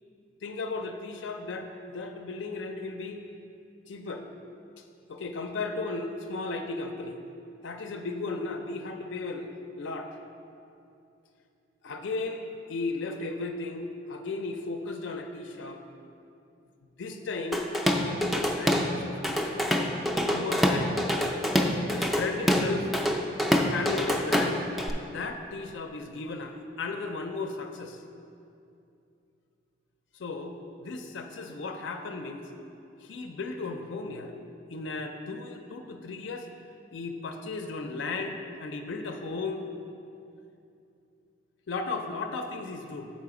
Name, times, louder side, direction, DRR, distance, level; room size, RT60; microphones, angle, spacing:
voice 1, 0.4-3.2 3.9-4.3 4.8-7.2 7.6-9.5 9.8-10.2 11.8-15.8 16.8-17.6 18.0-19.7 20.2-21.0 21.9-22.9 23.7-24.6 25.1-28.0 30.1-32.5 33.0-34.3 34.7-36.5 36.9-39.6 41.7-43.1, left 3 dB, 80° left, 4 dB, 0.4 m, -35 dB
Drum kit / Drum, 17.5-18.9 19.2-24.9, equal, ahead, 0.4 m, -26 dB
7.3 x 5.0 x 4.8 m, 2.6 s
head